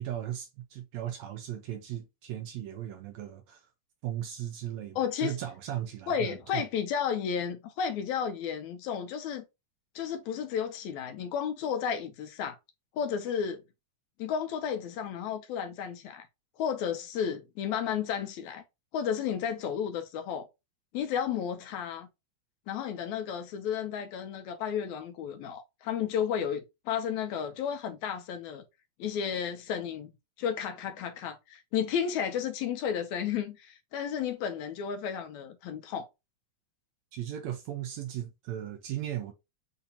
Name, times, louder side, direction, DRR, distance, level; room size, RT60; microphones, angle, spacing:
voice 1, 0.0-3.7 4.0-6.6 37.1-39.3, right 11 dB, 80° right, 1.7 m, -37 dB
voice 2, 5.0-5.3 6.1-9.4 10.0-12.6 12.9-13.6 14.2-16.3 16.6-18.6 18.9-20.5 20.9-22.1 22.7-28.6 29.0-30.1 30.4-36.1, left 8 dB, 75° left, 1.9 m, -32 dB
6.7 x 2.8 x 2.8 m
omnidirectional pair, 3.6 m